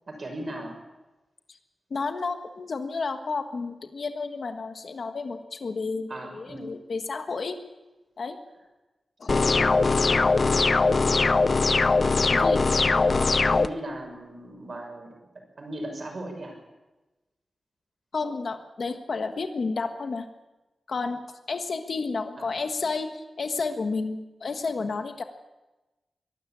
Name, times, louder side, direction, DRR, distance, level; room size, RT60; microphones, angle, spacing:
voice 1, 0.1-0.8 6.1-6.7 12.2-12.7 13.2-15.2 15.5-16.6 22.4-22.5, right 1 dB, 45° right, 2 dB, 5.7 m, -37 dB
voice 2, 1.9-7.6 8.2-8.4 9.2-9.3 12.3-12.6 13.1-13.4 18.1-20.3 20.9-21.2 21.5-25.2, left 4 dB, 55° left, 7 dB, 1.5 m, -31 dB
sound 1, 9.3-13.7, left 3 dB, 40° left, 0.6 m, -21 dB
23.5 x 13.0 x 8.6 m, 1.1 s
wide cardioid pair, 150°, 0 cm